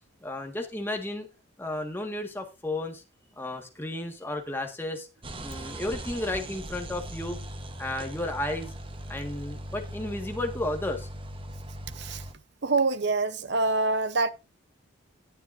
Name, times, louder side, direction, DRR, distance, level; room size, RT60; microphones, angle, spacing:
voice 1, 0.2-1.3 1.6-3.0 3.4-5.1 5.4-7.4 7.8-8.7 9.1-11.1, left 1 dB, 10° left, 1.6 m, -33 dB
sound 1, 5.2-12.3, right 1 dB, 25° right, 1.0 m, -39 dB
voice 2, 12.6-14.3, right 3 dB, 55° right, 0.8 m, -25 dB
19.5 x 7.0 x 2.6 m
head